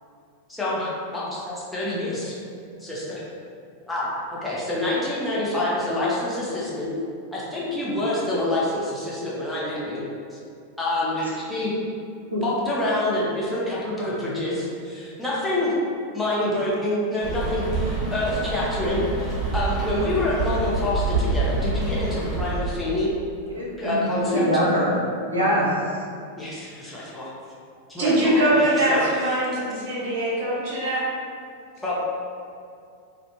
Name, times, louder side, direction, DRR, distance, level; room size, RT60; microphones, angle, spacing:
voice 1, 0.5-2.3 2.8-3.2 3.9-6.9 7.3-10.0 10.3-10.4 10.8-11.7 12.4-15.7 16.1-23.1 23.8-24.6 26.4-27.3 27.9-29.4 30.8-31.0 31.8-31.9, left 1 dB, 5° left, -8 dB, 0.6 m, -27 dB
Rain, 17.2-22.6, right 3 dB, 20° right, 0.9 m, -26 dB
voice 2, 23.5-24.9 25.3-25.7, equal, 80° right, -6 dB, 0.5 m, -23 dB
voice 3, 28.0-31.0, right 1 dB, 50° right, -8 dB, 0.9 m, -22 dB
2.5 x 2.1 x 2.8 m, 2.4 s
figure-of-eight pair, 90°, 0 cm